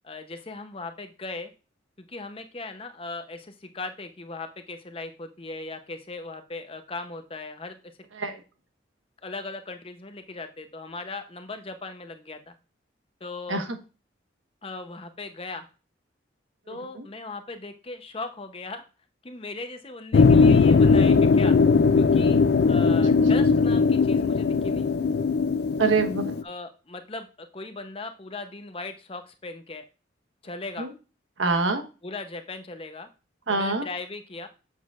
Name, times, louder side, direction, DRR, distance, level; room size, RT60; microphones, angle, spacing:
voice 1, 0.0-1.5 2.1-7.8 9.2-12.5 13.2-13.6 14.6-15.7 16.7-18.8 19.2-21.6 22.0-22.4 22.7-24.9 26.4-29.8 30.4-30.9 32.0-33.1 33.5-34.5, left 3 dB, 30° left, 8 dB, 0.7 m, -38 dB
sound 1, 20.1-26.4, left 4 dB, 55° left, 0.3 m, -19 dB
voice 2, 25.8-26.4 30.8-30.9 31.4-31.8 33.5-33.9, right 3 dB, 80° right, 6 dB, 1.3 m, -25 dB
7.8 x 7.3 x 2.4 m, 0.33 s
head